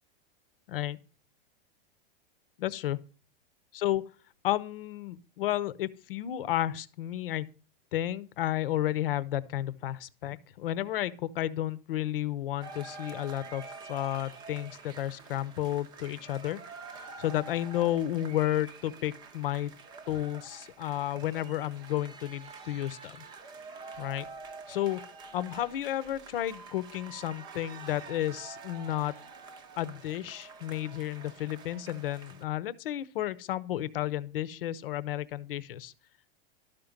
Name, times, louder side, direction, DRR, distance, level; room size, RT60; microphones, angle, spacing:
voice 1, 2.6-3.0 3.7-4.0 4.4-7.5 7.9-16.6 17.2-19.7 20.1-23.2 24.0-24.3 24.7-25.0 25.3-29.2 29.8-35.9, left 13 dB, 70° left, 1.0 m, -32 dB
sound 1, 12.6-32.4, right 4 dB, 15° right, 0.7 m, -47 dB
12.5 x 5.3 x 7.2 m
supercardioid pair, 175°, 30 cm